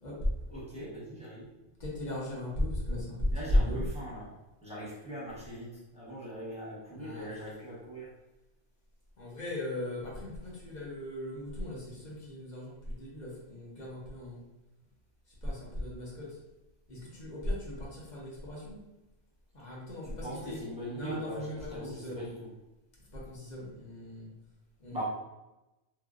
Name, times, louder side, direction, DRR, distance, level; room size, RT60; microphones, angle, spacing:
voice 1, 0.5-1.5 3.3-4.3 4.6-8.1 20.0-22.5 24.9-25.0, equal, 5° right, -8 dB, 1.0 m, -41 dB
voice 2, 1.8-3.3 3.5-3.8 6.9-7.3 9.2-14.4 15.4-16.3 16.9-18.8 19.5-20.6 20.9-22.2 23.1-24.3 24.8-25.0, left 1 dB, 45° left, -4 dB, 0.9 m, -36 dB
3.2 x 2.6 x 2.4 m, 0.99 s
omnidirectional pair, 1.2 m